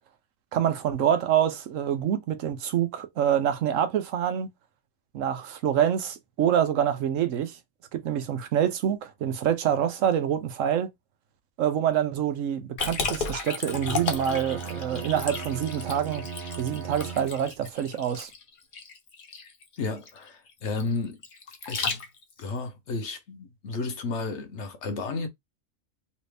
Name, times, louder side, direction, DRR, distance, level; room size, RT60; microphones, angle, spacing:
voice 1, 0.5-4.5 5.1-7.6 7.9-10.9 11.6-16.2 16.6-18.3, right 9 dB, 90° right, 1.1 m, -26 dB
Liquid, 12.8-22.4, left 5 dB, 50° left, 0.8 m, -34 dB
Bowed string instrument, 13.6-17.7, right 6 dB, 55° right, 0.8 m, -37 dB
voice 2, 19.8-21.2 21.7-22.0 22.4-25.3, left 3 dB, 70° left, 1.1 m, -32 dB
3.1 x 2.7 x 3.3 m
omnidirectional pair, 1.3 m